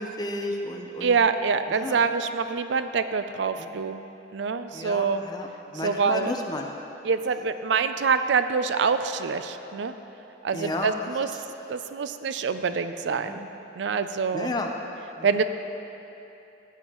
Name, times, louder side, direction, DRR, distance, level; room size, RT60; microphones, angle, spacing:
voice 1, 0.0-1.2 1.7-2.0 3.6-3.8 4.7-6.7 10.5-10.9 13.2-13.4 14.3-14.7 15.2-15.4, left 1 dB, 20° left, 2 dB, 0.7 m, -32 dB
voice 2, 1.0-4.0 4.3-5.2 5.8-6.3 7.0-9.9 10.4-11.3 11.7-13.5 13.8-14.5 15.2-15.4, right 5 dB, 75° right, 10 dB, 0.4 m, -25 dB
15.0 x 9.2 x 3.0 m, 2.9 s
head